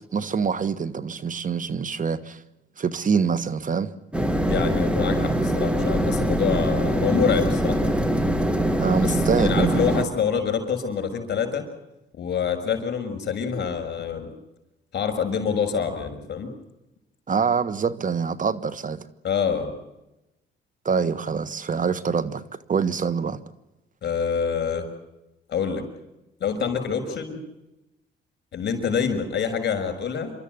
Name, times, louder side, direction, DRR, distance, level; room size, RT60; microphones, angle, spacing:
voice 1, 0.1-2.4 2.8-3.9 8.8-9.9 17.3-19.1 20.8-22.4 22.7-23.4, right 6 dB, 40° right, 1.4 m, -25 dB
sound 1, 4.1-10.0, right 1 dB, 5° right, 2.3 m, -23 dB
voice 2, 4.5-7.8 9.0-11.6 12.2-14.3 14.9-16.5 19.2-19.8 24.0-24.9 25.5-25.9 26.4-27.4 28.5-30.3, left 7 dB, 55° left, 6.3 m, -26 dB
28.0 x 13.5 x 9.6 m
cardioid pair, 90°, 20 cm